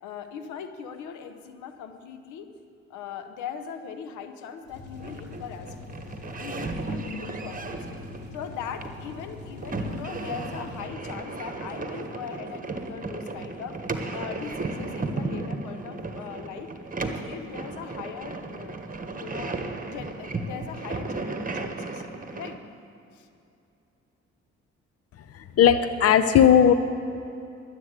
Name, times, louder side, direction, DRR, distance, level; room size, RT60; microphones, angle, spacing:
voice 1, 0.0-2.5 2.9-5.8 6.4-7.8 8.3-13.8 14.1-16.7 17.0-18.8 19.1-19.6 19.9-22.0 22.3-22.6 23.1-23.3, left 7 dB, 85° left, 9 dB, 0.9 m, -39 dB
sound 1, 4.6-11.2, left 3 dB, 35° left, 3.6 m, -43 dB
sound 2, 4.9-22.5, right 3 dB, 30° right, 1.3 m, -35 dB
voice 2, 25.3-26.7, left 9 dB, 55° left, 11 dB, 0.7 m, -17 dB
12.0 x 8.4 x 8.1 m, 2.7 s
supercardioid pair, 60°, 29 cm